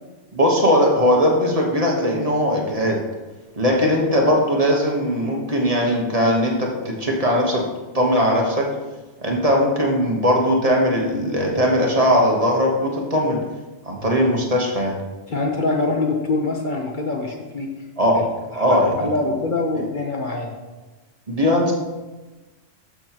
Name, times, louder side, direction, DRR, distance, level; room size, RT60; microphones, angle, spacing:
voice 1, 0.3-3.0 3.6-7.6 7.9-8.6 9.2-13.4 13.9-14.9 18.0-18.2 18.5-19.0 21.3-21.7, equal, 30° right, -1 dB, 1.3 m, -19 dB
voice 2, 15.3-17.7 18.1-18.3 18.6-20.6, left 3 dB, 45° left, 1 dB, 0.9 m, -24 dB
12.5 x 6.1 x 3.0 m, 1.2 s
omnidirectional pair, 1.2 m